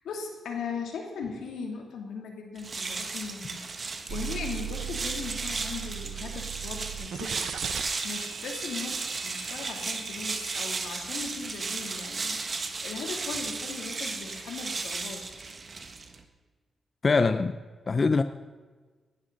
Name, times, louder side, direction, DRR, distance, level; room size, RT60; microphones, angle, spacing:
voice 1, 0.0-15.3, left 5 dB, 90° left, 2 dB, 2.9 m, -39 dB
sound 1, 2.5-16.2, right 4 dB, 45° right, 1.7 m, -35 dB
sound 2, 4.1-10.7, right 9 dB, 85° right, 0.8 m, -39 dB
voice 2, 17.0-17.6 17.9-18.2, left 4 dB, 40° left, 11 dB, 0.6 m, -23 dB
18.5 x 13.0 x 4.0 m, 1.4 s
cardioid pair, 80°, 0 cm